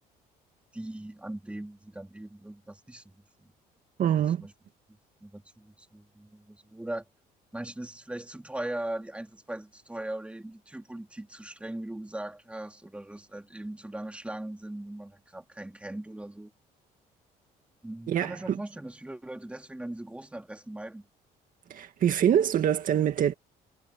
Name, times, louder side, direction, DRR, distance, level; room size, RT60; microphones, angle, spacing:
voice 1, 0.7-3.1 3.4-3.5 4.4-4.5 5.2-7.1 7.5-16.5 17.8-21.1, right 1 dB, 5° right, 3.6 m, -39 dB
voice 2, 4.0-4.4 18.1-18.6 21.7-23.3, right 9 dB, 55° right, 2.0 m, -25 dB
cardioid pair, 110°, 17 cm